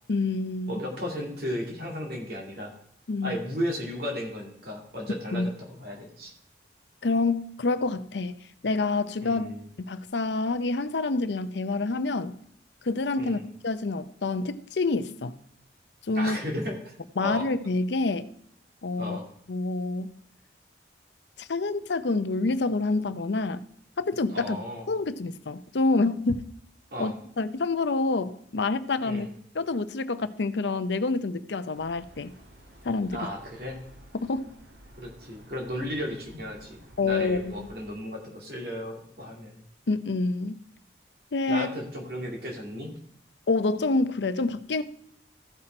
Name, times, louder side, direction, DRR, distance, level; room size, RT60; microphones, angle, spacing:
voice 1, 0.1-0.8 3.1-3.3 5.3-5.5 7.0-8.4 8.6-9.5 9.8-12.3 12.8-15.3 16.1-16.4 17.2-18.3 18.8-19.2 19.5-20.1 21.4-23.6 24.0-24.6 24.9-26.4 27.0-29.3 29.5-32.3 32.8-33.3 34.1-34.5 37.0-37.7 39.9-40.6 41.3-41.7 43.5-44.8, left 3 dB, 75° left, 0.6 m, -27 dB
voice 2, 0.7-2.7 3.2-6.3 9.2-9.7 13.2-13.5 16.1-17.4 19.0-19.2 24.3-24.9 26.9-27.1 29.0-29.3 33.1-33.8 35.0-39.6 41.5-42.9, equal, 55° right, 2.4 m, -35 dB
sound 1, 31.7-37.8, equal, 75° right, 1.9 m, -52 dB
15.0 x 5.8 x 4.4 m
head